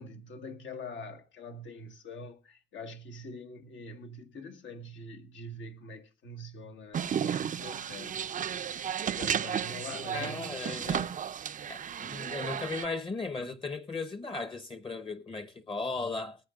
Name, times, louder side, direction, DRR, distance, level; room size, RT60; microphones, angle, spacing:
voice 1, 0.0-8.3 9.1-10.6, left 1 dB, 70° left, 1.6 m, -44 dB
sound 1, 6.9-12.9, right 8 dB, 40° right, 0.5 m, -33 dB
voice 2, 10.1-11.1 11.7-16.4, left 3 dB, 25° left, 1.0 m, -36 dB
21.0 x 8.7 x 2.4 m
cardioid pair, 90°, 20 cm